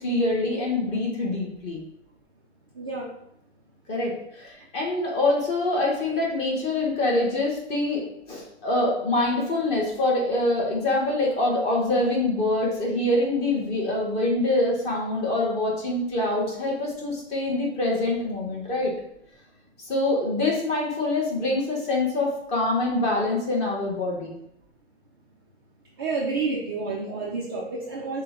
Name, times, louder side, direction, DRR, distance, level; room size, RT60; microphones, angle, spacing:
voice 1, 0.0-1.8 3.9-18.9 19.8-24.4, left 2 dB, 20° left, -3 dB, 1.0 m, -25 dB
voice 2, 2.8-3.1 26.0-28.2, right 3 dB, 20° right, -5 dB, 0.4 m, -29 dB
6.5 x 2.2 x 3.7 m, 0.76 s
hypercardioid pair, 150°, 35 cm